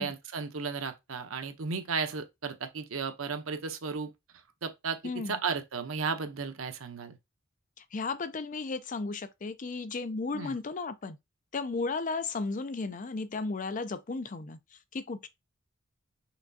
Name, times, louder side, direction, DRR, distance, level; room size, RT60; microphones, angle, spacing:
voice 1, 0.0-4.1 4.6-5.0 5.3-7.2 10.3-10.6, right 5 dB, 90° right, 0.8 m, -34 dB
voice 2, 5.0-5.4 7.8-11.2 11.5-14.6 14.9-15.3, left 3 dB, 40° left, 0.5 m, -34 dB
5.7 x 3.4 x 2.7 m
head